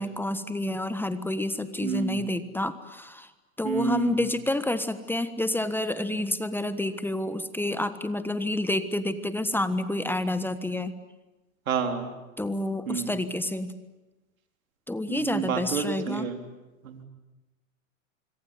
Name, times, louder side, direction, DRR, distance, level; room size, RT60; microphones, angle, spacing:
voice 1, 0.0-3.3 3.6-10.9 12.4-13.7 14.9-16.3, left 1 dB, 5° left, 11 dB, 1.3 m, -29 dB
voice 2, 1.8-2.2 3.6-4.2 11.7-12.1 12.9-13.2 15.1-16.4 16.8-17.0, right 7 dB, 85° right, 5 dB, 4.1 m, -29 dB
25.5 x 24.0 x 9.8 m, 1.1 s
hypercardioid pair, 115°, 40 cm